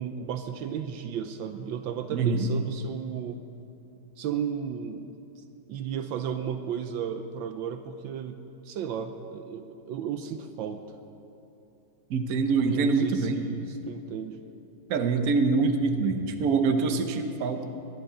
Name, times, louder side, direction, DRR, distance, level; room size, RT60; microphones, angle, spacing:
voice 1, 0.0-3.4 4.2-5.1 5.7-8.4 8.6-10.8 12.6-14.4, right 8 dB, 75° right, 8 dB, 1.4 m, -34 dB
voice 2, 2.1-2.5 12.1-13.4 14.9-17.6, right 4 dB, 55° right, 6 dB, 1.2 m, -25 dB
20.5 x 11.5 x 4.9 m, 3.0 s
omnidirectional pair, 2.2 m